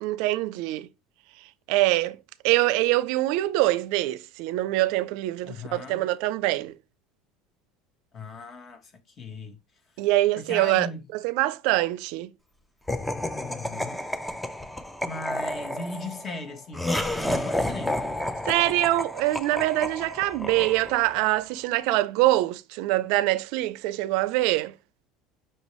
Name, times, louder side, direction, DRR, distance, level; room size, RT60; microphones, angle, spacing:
voice 1, 0.0-0.9 1.7-2.2 2.4-6.7 10.0-10.9 11.1-12.3 18.5-24.7, right 17 dB, 70° right, 0.4 m, -24 dB
voice 2, 5.4-6.0 8.1-9.6 10.4-11.0 13.4-14.0 15.0-18.0, left 3 dB, 35° left, 1.1 m, -38 dB
Laughter, 12.9-21.2, left 1 dB, 5° left, 0.5 m, -31 dB
5.5 x 2.7 x 3.0 m
supercardioid pair, 130°, 0 cm